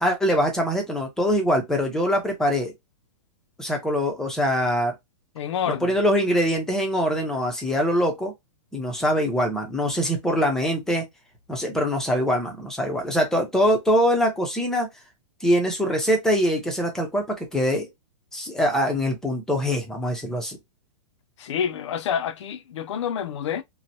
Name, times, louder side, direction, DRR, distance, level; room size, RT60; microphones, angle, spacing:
voice 1, 0.0-2.7 3.6-4.9 5.7-8.3 8.7-11.1 11.5-14.9 15.4-17.2 17.5-17.9 18.3-20.6, equal, 5° left, 0.6 m, -23 dB
voice 2, 5.3-5.9 21.4-23.6, left 8 dB, 65° left, 0.5 m, -28 dB
3.0 x 2.1 x 2.6 m
hypercardioid pair, 160°, 16 cm